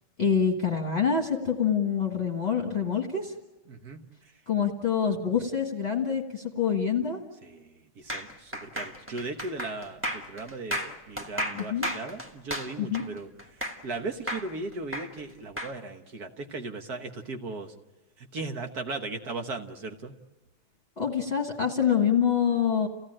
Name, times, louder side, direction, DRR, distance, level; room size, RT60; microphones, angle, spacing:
voice 1, 0.2-3.3 4.5-7.2 11.5-11.9 12.8-13.0 21.0-22.9, left 7 dB, 35° left, 0 dB, 1.7 m, -26 dB
voice 2, 3.7-4.0 7.4-13.3 13.6-17.7 18.2-20.1, right 3 dB, 55° right, 5 dB, 1.6 m, -37 dB
sound 1, 8.1-14.0 14.3-15.7, equal, 5° right, 1.2 m, -34 dB
29.0 x 16.5 x 8.8 m, 1.2 s
omnidirectional pair, 2.2 m